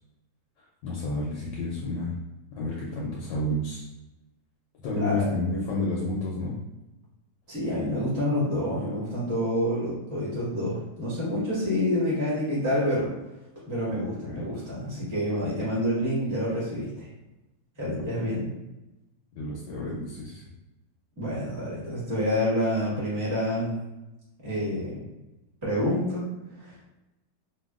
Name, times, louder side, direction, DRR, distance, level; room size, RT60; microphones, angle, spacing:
voice 1, 0.8-2.1 2.6-3.8 4.8-6.6 14.2-14.5 17.8-18.0 19.4-20.4, left 2 dB, 80° left, -4 dB, 1.2 m, -30 dB
voice 2, 4.9-5.2 7.5-13.1 13.7-17.1 17.8-18.5 21.2-23.8 24.4-25.0 25.6-26.2 26.6-26.7, equal, 10° right, -9 dB, 0.9 m, -28 dB
3.2 x 2.3 x 2.3 m, 0.99 s
omnidirectional pair, 2.0 m